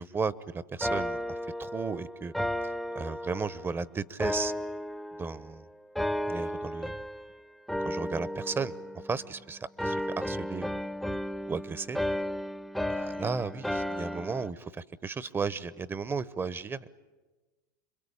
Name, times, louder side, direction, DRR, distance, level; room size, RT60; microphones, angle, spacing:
voice 1, 0.0-2.3 2.9-4.5 5.2-5.6 6.3-6.9 7.8-8.7 9.1-10.8 11.5-12.0 12.9-16.9, right 5 dB, 20° right, 18 dB, 1.0 m, -34 dB
sound 1, 0.8-3.7 4.2-5.5 6.0-7.3 7.7-9.4 9.8-14.5, left 1 dB, ahead, 0.9 m, -34 dB
27.0 x 22.5 x 8.7 m, 1.2 s
hypercardioid pair, 85°, 10 cm